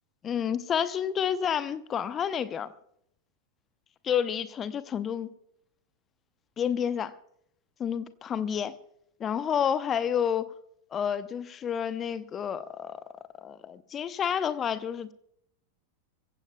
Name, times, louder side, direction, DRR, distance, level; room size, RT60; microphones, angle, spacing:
voice 1, 0.2-2.7 4.0-5.3 6.6-7.1 7.8-8.8 9.2-10.5 10.9-13.0 13.4-15.1, left 8 dB, 25° left, 0.8 m, -29 dB
25.5 x 15.5 x 2.3 m
figure-of-eight pair, 90°, 0 cm